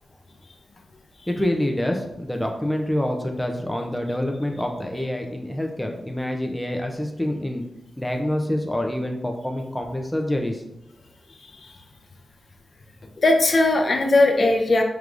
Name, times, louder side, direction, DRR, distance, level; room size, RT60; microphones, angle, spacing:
voice 1, 1.3-7.6 8.0-10.6, left 1 dB, 5° left, 2 dB, 0.4 m, -26 dB
voice 2, 11.4-11.7 13.2-14.8, left 2 dB, 50° left, 3 dB, 0.6 m, -19 dB
4.7 x 3.4 x 2.5 m, 0.86 s
wide cardioid pair, 85°, 0 cm